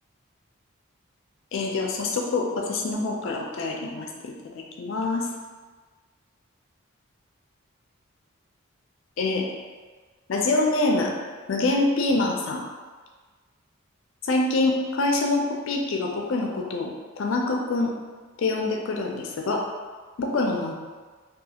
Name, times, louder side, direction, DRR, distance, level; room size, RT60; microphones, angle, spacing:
voice 1, 1.5-5.3 9.2-9.5 10.3-11.1 11.5-12.6 14.2-17.9 18.4-19.6 20.2-20.7, left 2 dB, 65° left, 0 dB, 0.4 m, -25 dB
2.3 x 2.3 x 2.8 m, 1.4 s
head